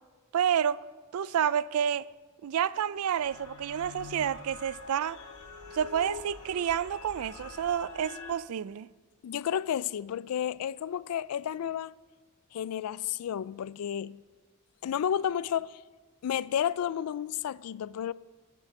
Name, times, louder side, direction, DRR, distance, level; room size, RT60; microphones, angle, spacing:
voice 1, 0.3-0.8 1.1-2.1 2.4-5.2 5.7-8.9, right 8 dB, 75° right, 0.4 m, -29 dB
sound 1, 3.2-8.3, left 4 dB, 70° left, 1.4 m, -45 dB
voice 2, 9.2-11.9 12.5-14.2 14.8-15.8 16.2-18.1, left 9 dB, 85° left, 0.3 m, -31 dB
18.5 x 7.6 x 5.3 m
head